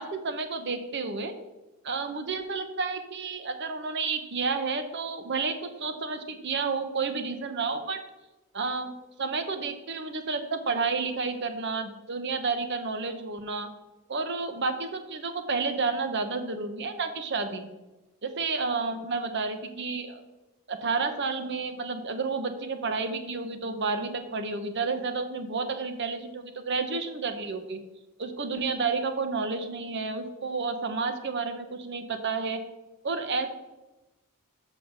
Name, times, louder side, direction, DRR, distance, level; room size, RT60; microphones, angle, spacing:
voice 1, 0.0-1.3 1.8-8.0 8.5-13.7 14.1-17.7 18.2-20.2 20.7-27.8 28.2-32.6 33.0-33.5, right 4 dB, 55° right, 8 dB, 0.8 m, -31 dB
6.5 x 6.4 x 6.3 m, 1.0 s
head